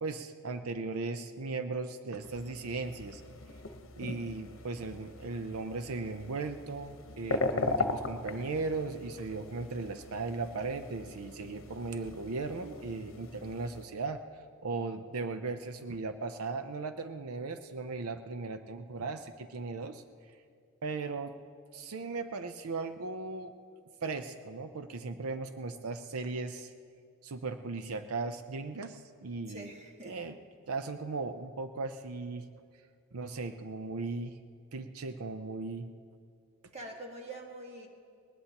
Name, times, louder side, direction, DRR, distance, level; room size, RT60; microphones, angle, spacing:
voice 1, 0.0-3.2 4.0-14.2 14.6-20.0 20.8-21.3 21.7-23.5 24.0-26.7 27.2-29.7 30.0-30.4 30.7-32.5 33.1-34.4 34.7-35.9, right 3 dB, 85° right, 8 dB, 0.6 m, -37 dB
sound 1, 2.2-13.8, left 3 dB, 60° left, 1.0 m, -39 dB
voice 2, 29.5-30.2 36.7-37.9, right 1 dB, 30° right, 1 dB, 1.7 m, -45 dB
21.0 x 19.0 x 2.9 m, 2.3 s
head